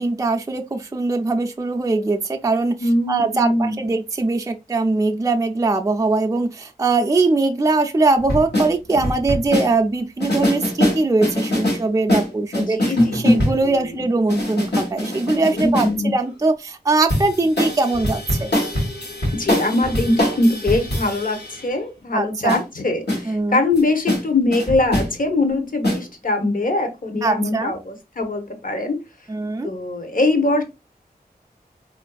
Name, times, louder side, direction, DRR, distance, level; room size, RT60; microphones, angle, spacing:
voice 1, 0.0-2.8 3.1-12.8 13.1-18.5 22.1-22.6 23.3-23.6 27.2-27.7 29.3-29.7, right 3 dB, 20° right, 0.3 m, -21 dB
voice 2, 2.8-3.7 12.5-14.0 15.6-16.1 19.3-29.0 29.6-30.6, left 2 dB, 55° left, 0.8 m, -22 dB
sound 1, 8.2-9.7 10.2-11.8 12.1-13.7 14.3-15.9 17.1-21.7 22.5-22.6 23.1-23.2 23.8-23.9 24.1-24.2 24.5-25.1 25.8-26.0, left 1 dB, 85° left, 1.1 m, -22 dB
3.8 x 2.5 x 2.2 m
wide cardioid pair, 60°, 17 cm